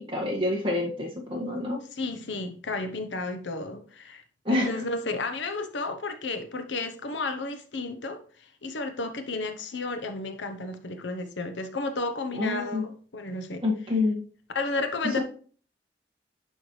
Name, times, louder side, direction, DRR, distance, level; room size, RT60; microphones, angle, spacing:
voice 1, 0.0-1.8 4.5-4.7 12.3-12.8 13.6-14.2, left 2 dB, 30° right, 1.8 m, -27 dB
voice 2, 2.0-4.2 4.5-8.2 8.6-13.6 14.5-15.2, left 3 dB, 85° left, 0.9 m, -32 dB
11.0 x 4.6 x 3.2 m
head